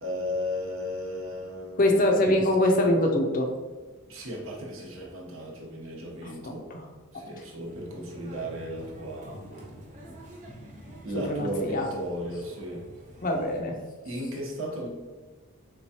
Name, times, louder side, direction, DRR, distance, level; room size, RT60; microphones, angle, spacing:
voice 1, 0.0-2.1 4.1-6.7 7.1-9.4 11.0-12.9 14.0-14.9, equal, 65° right, -1 dB, 1.0 m, -35 dB
voice 2, 1.8-3.5 6.2-6.9 7.4-7.5 11.2-11.9 13.2-13.8, left 1 dB, 35° left, 2 dB, 0.5 m, -24 dB
sound 1, 7.6-13.6, right 1 dB, 35° right, 0.9 m, -46 dB
4.5 x 3.5 x 2.8 m, 1.3 s
head